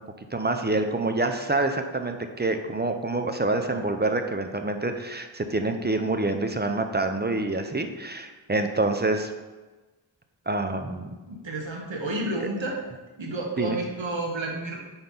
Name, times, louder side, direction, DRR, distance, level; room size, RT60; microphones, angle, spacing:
voice 1, 0.3-9.3 10.5-11.1 12.4-12.5 13.6-13.8, right 2 dB, 25° right, 6 dB, 0.5 m, -27 dB
voice 2, 11.3-12.8 13.2-14.8, right 2 dB, 70° right, -1 dB, 1.2 m, -30 dB
5.4 x 4.4 x 4.0 m, 1.2 s
wide cardioid pair, 65°, 46 cm